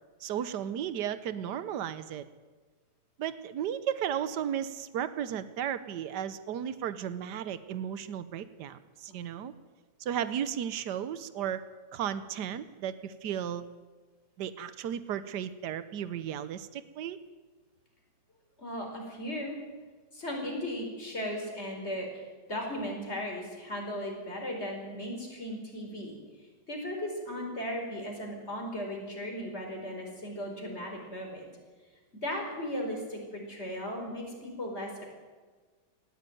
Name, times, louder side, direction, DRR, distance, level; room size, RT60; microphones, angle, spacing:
voice 1, 0.2-2.2 3.2-9.5 10.0-11.6 11.9-13.6 14.4-17.2, right 9 dB, 80° right, 13 dB, 1.5 m, -34 dB
voice 2, 9.1-9.4 18.6-19.6 20.1-26.2 26.7-31.5 32.2-35.1, equal, 40° left, 1 dB, 5.0 m, -37 dB
19.0 x 15.0 x 9.3 m, 1.4 s
omnidirectional pair, 1.8 m